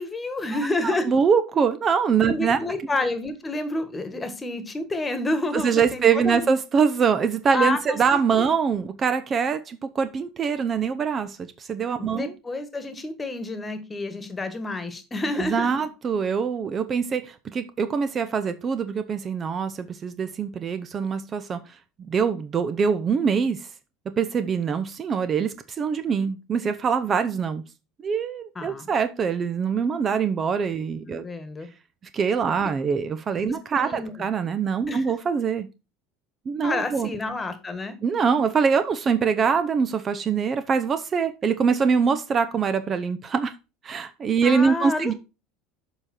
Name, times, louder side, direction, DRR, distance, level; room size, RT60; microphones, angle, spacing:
voice 1, 0.0-1.0 2.2-6.4 7.5-8.5 12.0-15.7 28.5-28.9 31.0-31.7 33.4-34.1 34.9-35.1 36.6-37.9 44.4-45.1, left 2 dB, 20° left, 1.6 m, -29 dB
voice 2, 0.5-2.6 5.5-12.3 15.4-21.6 22.1-23.7 24.2-27.6 28.0-31.2 32.1-35.7 36.5-37.1 38.0-43.5 43.8-45.1, right 6 dB, 35° right, 0.7 m, -24 dB
7.2 x 5.0 x 4.3 m
hypercardioid pair, 90°, 0 cm